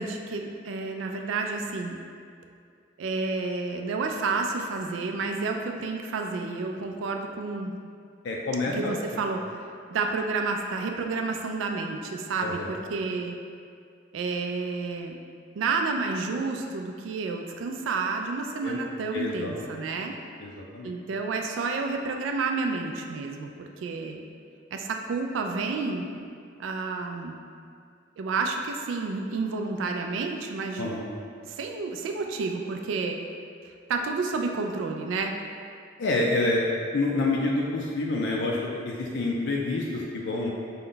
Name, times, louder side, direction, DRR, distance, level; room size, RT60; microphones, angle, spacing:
voice 1, 0.0-2.0 3.0-7.7 8.8-13.4 14.1-15.2 15.6-20.2 20.8-24.2 24.7-26.0 26.6-27.3 28.2-30.9 31.5-33.2 33.6-35.3, right 4 dB, 75° right, 3 dB, 0.3 m, -30 dB
voice 2, 8.2-9.2 12.4-12.7 18.6-18.8 19.1-19.9 20.4-20.9 30.8-31.0 36.0-38.6 38.8-40.5, left 2 dB, 65° left, -2 dB, 0.4 m, -28 dB
5.1 x 2.2 x 3.7 m, 2.3 s
head